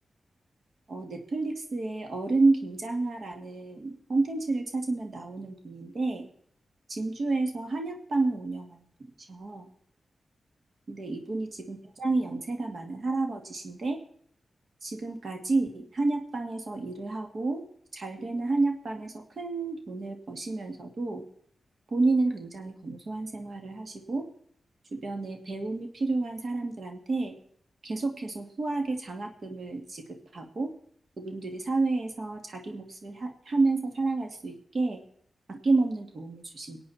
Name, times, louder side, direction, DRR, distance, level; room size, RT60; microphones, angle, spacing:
voice 1, 0.9-6.3 6.9-9.7 10.9-14.0 14.8-17.6 17.9-21.2 21.9-24.3 24.9-27.4 27.8-30.0 30.3-30.7 31.2-35.0 35.5-36.8, right 3 dB, 60° right, 3 dB, 2.2 m, -30 dB
22.0 x 8.6 x 4.3 m, 0.65 s
cardioid pair, 75°, 0 cm